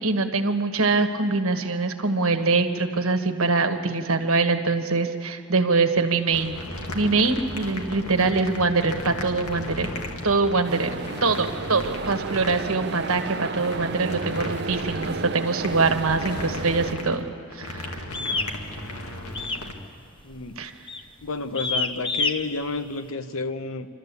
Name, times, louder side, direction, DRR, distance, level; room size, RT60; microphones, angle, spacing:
voice 1, 0.0-6.6 6.9-9.9 10.2-10.9 11.2-17.3 17.5-18.0 20.6-20.7, right 3 dB, 70° right, 7 dB, 1.3 m, -23 dB
sound 1, 6.3-19.7, left 1 dB, 90° left, 2.1 m, -36 dB
sound 2, 10.6-16.9, right 4 dB, 50° right, 0.5 m, -33 dB
sound 3, 18.1-18.5 19.3-19.7 20.0-20.3 20.9-21.1 21.5-22.3, left 3 dB, 25° left, 0.8 m, -26 dB
voice 2, 20.2-20.6 21.2-23.9, left 3 dB, 70° left, 9 dB, 1.0 m, -31 dB
26.5 x 13.0 x 8.3 m, 2.8 s
head